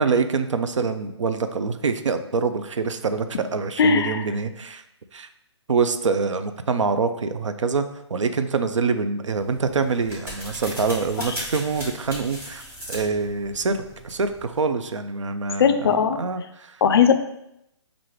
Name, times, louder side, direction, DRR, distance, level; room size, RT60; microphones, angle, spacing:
voice 1, 0.0-4.8 5.1-5.3 5.7-12.6 12.9-16.8, right 4 dB, 85° right, 9 dB, 0.4 m, -25 dB
voice 2, 3.8-4.2 15.6-16.2 16.8-17.1, left 6 dB, 55° left, 9 dB, 0.4 m, -18 dB
sound 1, 9.3-14.6, equal, 15° right, 1.3 m, -38 dB
4.7 x 2.5 x 3.0 m, 0.81 s
figure-of-eight pair, 140°, 15 cm